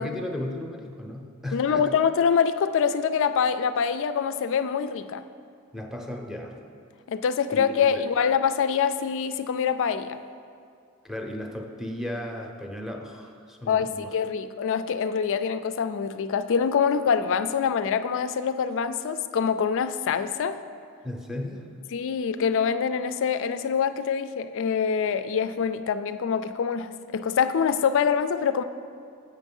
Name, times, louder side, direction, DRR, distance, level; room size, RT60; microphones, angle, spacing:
voice 1, 0.0-1.9 5.7-6.5 7.5-8.0 11.0-14.1 21.0-21.7, left 1 dB, ahead, 1 dB, 0.7 m, -35 dB
voice 2, 1.5-5.2 7.1-10.2 13.7-20.6 21.9-28.6, left 6 dB, 60° left, 11 dB, 0.4 m, -25 dB
7.5 x 6.3 x 5.4 m, 2.2 s
head